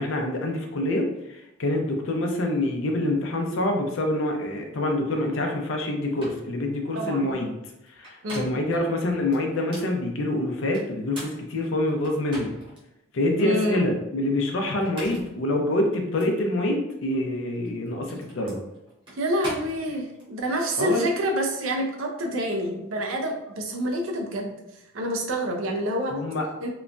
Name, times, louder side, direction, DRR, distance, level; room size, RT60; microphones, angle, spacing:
voice 1, 0.0-7.6 7.9-12.5 13.1-18.6 20.8-21.1 26.1-26.4, left 1 dB, 75° left, 3 dB, 0.5 m, -26 dB
sound 1, 5.8-5.9 6.2-6.5 7.9-8.7 9.3-10.0 10.7-12.8 13.3-13.4 14.7-15.4 16.2-16.3 17.5-20.3, equal, 25° right, 0.9 m, -42 dB
voice 2, 6.9-7.3 8.2-8.5 13.4-13.8 19.2-24.5 24.9-26.1 26.6-26.7, equal, 85° right, 2 dB, 0.6 m, -27 dB
3.0 x 2.2 x 2.5 m, 0.90 s
head